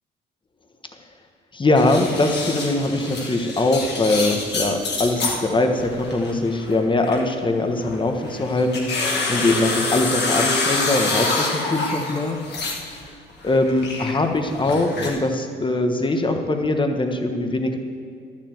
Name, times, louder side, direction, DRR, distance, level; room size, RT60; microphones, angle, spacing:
voice 1, 1.5-12.4 13.4-17.8, left 2 dB, 25° left, 5 dB, 1.4 m, -22 dB
sound 1, 1.8-5.4 5.8-7.3 7.8-13.0 13.3-15.1, left 3 dB, 60° left, 2.5 m, -27 dB
11.5 x 7.5 x 7.9 m, 2.3 s
cardioid pair, 90°, 20 cm